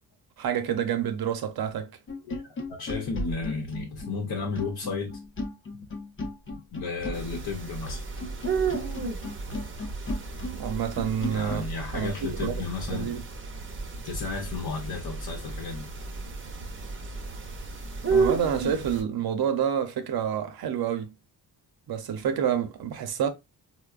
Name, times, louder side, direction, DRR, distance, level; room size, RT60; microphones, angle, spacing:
voice 1, 0.4-1.9 10.5-11.7 11.9-12.5 12.9-13.2 18.1-21.1 21.9-23.3, right 8 dB, 70° right, 0.7 m, -28 dB
sound 1, 2.1-11.7, left 1 dB, 30° left, 0.7 m, -36 dB
voice 2, 2.2-5.2 6.7-8.1 11.3-13.2 14.0-15.9, left 4 dB, 70° left, 0.8 m, -33 dB
sound 2, 7.1-19.0, right 4 dB, 30° right, 0.7 m, -33 dB
4.3 x 2.1 x 2.3 m
cardioid pair, 110°, 39 cm